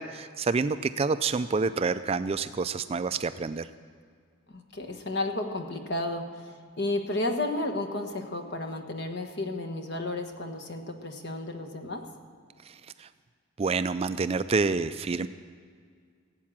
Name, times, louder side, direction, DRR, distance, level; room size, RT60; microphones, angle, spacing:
voice 1, 0.0-3.7 12.6-13.1 13.6-15.3, right 4 dB, 30° right, 12 dB, 0.3 m, -28 dB
voice 2, 4.5-6.5 6.8-12.0, left 2 dB, 50° left, 5 dB, 1.3 m, -32 dB
17.0 x 8.5 x 7.4 m, 2.1 s
head